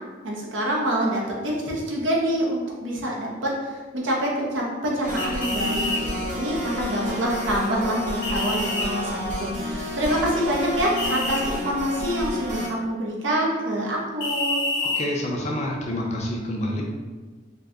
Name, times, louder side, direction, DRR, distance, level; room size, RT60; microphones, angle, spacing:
voice 1, 0.2-14.6, equal, 80° right, -3 dB, 0.8 m, -26 dB
sound 1, 5.0-12.7, left 1 dB, 40° right, 0.6 m, -30 dB
sound 2, 5.2-6.0 8.2-8.9 11.0-11.4 14.2-15.0, left 2 dB, 70° left, 0.8 m, -27 dB
voice 2, 14.8-16.8, left 1 dB, 35° left, -1 dB, 0.5 m, -28 dB
3.8 x 2.7 x 2.3 m, 1.4 s
head